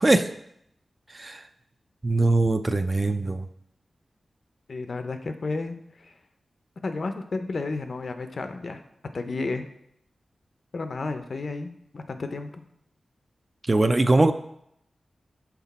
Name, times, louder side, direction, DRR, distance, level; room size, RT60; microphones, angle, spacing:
voice 1, 2.0-3.4 13.7-14.3, right 2 dB, 30° right, 9 dB, 0.4 m, -21 dB
voice 2, 4.7-6.1 6.8-8.8 9.1-9.7 10.7-12.6, left 3 dB, 60° left, 8 dB, 0.5 m, -32 dB
5.9 x 4.0 x 4.2 m, 0.75 s
wide cardioid pair, 75°, 0 cm